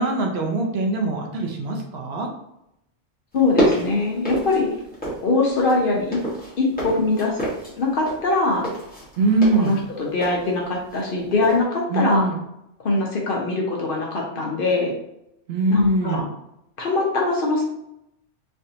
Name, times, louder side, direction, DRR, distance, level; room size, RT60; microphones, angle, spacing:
voice 1, 0.0-2.3 9.2-9.8 11.9-12.4 15.5-16.3, right 2 dB, 65° right, 1 dB, 0.8 m, -22 dB
voice 2, 3.3-4.7 5.2-6.2 6.6-7.4 7.8-8.7 9.6-12.2 12.8-14.9 15.7-16.2 16.8-17.6, left 3 dB, 55° left, -1 dB, 0.7 m, -22 dB
sound 1, 3.3-5.3 5.6-11.1 11.4-11.6, right 1 dB, 10° left, 1.0 m, -28 dB
3.3 x 2.5 x 2.7 m, 0.81 s
omnidirectional pair, 1.2 m